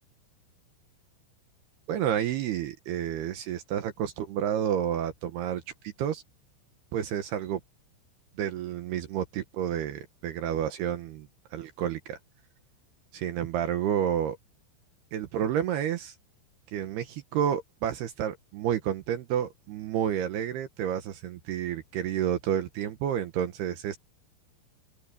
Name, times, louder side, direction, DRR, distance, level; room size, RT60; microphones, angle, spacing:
voice 1, 1.9-6.2 6.9-7.6 8.4-12.2 13.1-14.4 15.1-16.1 16.7-24.0, right 9 dB, 70° right, 2.7 m, -30 dB
open air
omnidirectional pair, 5.7 m